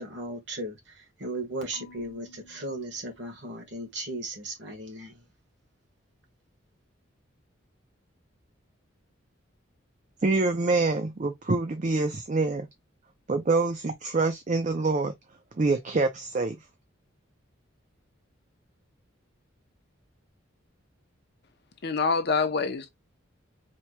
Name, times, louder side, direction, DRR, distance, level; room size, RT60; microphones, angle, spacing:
voice 1, 0.0-5.2, right 1 dB, 60° right, 1.5 m, -36 dB
Marimba xylophone / Wood, 1.7-3.9, left 3 dB, 5° left, 1.7 m, -54 dB
voice 2, 10.2-12.7 13.3-15.1 15.5-16.6, right 3 dB, 35° right, 0.4 m, -26 dB
voice 3, 21.8-22.9, left 4 dB, 55° left, 0.6 m, -26 dB
4.4 x 2.9 x 2.2 m
head